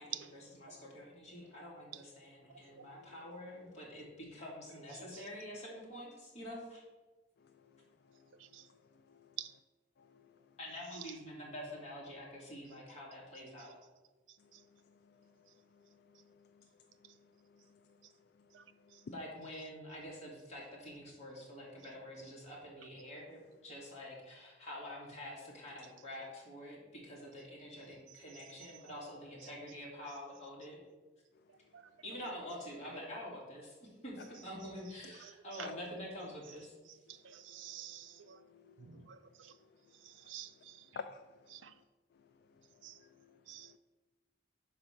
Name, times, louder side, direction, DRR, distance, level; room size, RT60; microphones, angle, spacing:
voice 1, 0.0-6.8 10.6-13.7 19.1-30.8 32.0-36.7, left 1 dB, 35° left, 2.4 m, -47 dB
voice 2, 2.8-3.1 8.1-8.3 8.7-8.8 9.1-9.3 10.0-10.3 15.2-15.3 15.7-15.8 16.5-16.6 17.0-17.1 18.8-19.0 35.6-35.7 37.5-37.9 38.3-39.1 40.9-41.4 43.0-43.8, left 5 dB, 60° left, 0.4 m, -52 dB
voice 3, 37.2-38.4 38.8-39.5 40.0-40.8 41.5-41.7 42.8-43.0 43.5-43.7, right 11 dB, 85° right, 0.5 m, -48 dB
5.8 x 4.9 x 6.4 m
head